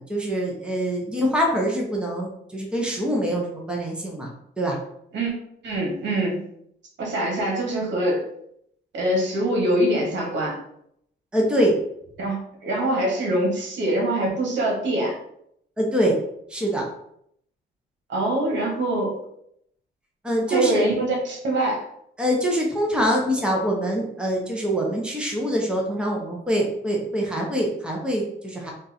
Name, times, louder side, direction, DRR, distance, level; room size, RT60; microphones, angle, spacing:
voice 1, 0.1-4.3 4.6-4.8 11.3-11.8 15.8-16.2 16.5-16.8 20.2-20.9 22.2-28.7, equal, 5° right, -1 dB, 1.0 m, -24 dB
voice 2, 5.6-6.4 7.0-8.2 8.9-10.6 12.2-15.1 18.1-19.1 20.5-21.8, right 1 dB, 65° right, -1 dB, 1.5 m, -24 dB
3.7 x 2.7 x 4.2 m, 0.72 s
cardioid pair, 90°, 20 cm